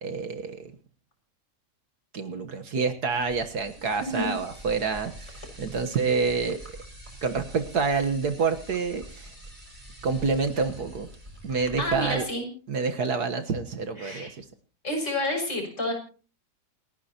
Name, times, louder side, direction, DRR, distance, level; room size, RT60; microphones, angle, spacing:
voice 1, 0.0-0.7 2.1-6.6 7.2-9.3 10.0-11.1 11.4-12.3 12.7-14.5, right 5 dB, 65° right, 7 dB, 1.8 m, -28 dB
sound 1, 3.1-12.2, right 1 dB, 25° right, 7.2 m, -45 dB
voice 2, 4.0-4.3 11.5-12.5 14.0-14.3 14.8-15.9, left 1 dB, 40° left, 1 dB, 6.8 m, -29 dB
29.0 x 11.0 x 2.9 m, 0.37 s
omnidirectional pair, 1.9 m